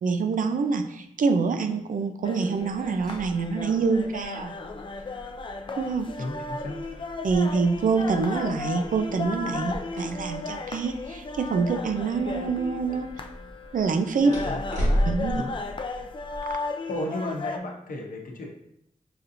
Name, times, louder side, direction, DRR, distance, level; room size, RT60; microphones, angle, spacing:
voice 1, 0.0-4.5 5.8-6.1 7.2-13.1 13.7-14.3 15.0-15.4, right 4 dB, 75° right, 7 dB, 0.4 m, -26 dB
sound 1, 2.2-17.6, left 3 dB, 40° left, 0.3 m, -35 dB
sound 2, 2.6-16.5, equal, 60° right, 1.5 m, -36 dB
voice 2, 6.2-6.8 14.3-14.6 15.3-15.5 16.9-18.5, left 1 dB, 85° left, 0 dB, 0.8 m, -34 dB
5.8 x 2.7 x 2.6 m, 0.76 s
wide cardioid pair, 115°, 14 cm